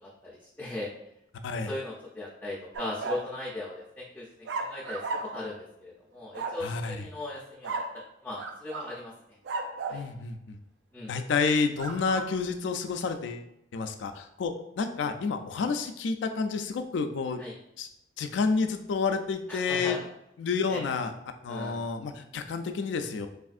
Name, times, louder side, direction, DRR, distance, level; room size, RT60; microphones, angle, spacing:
voice 1, 0.0-0.9 1.6-5.0 5.3-9.1 9.9-10.0 10.9-11.1 17.4-17.5 19.5-20.1 20.7-20.8 21.5-21.8, left 2 dB, 10° left, -6 dB, 0.4 m, -38 dB
sound 1, 2.7-3.3 4.4-5.5 6.3-6.7 7.6-8.0 8.4-8.9 9.4-10.1 11.8-12.3, right 3 dB, 75° right, 0.3 m, -35 dB
voice 2, 6.6-7.1 9.9-10.6 11.1-13.5 13.7-17.4 17.8-17.9 18.2-20.0 20.4-21.1 21.4-23.3, left 4 dB, 85° left, 7 dB, 0.3 m, -29 dB
3.5 x 2.4 x 2.4 m, 0.81 s
head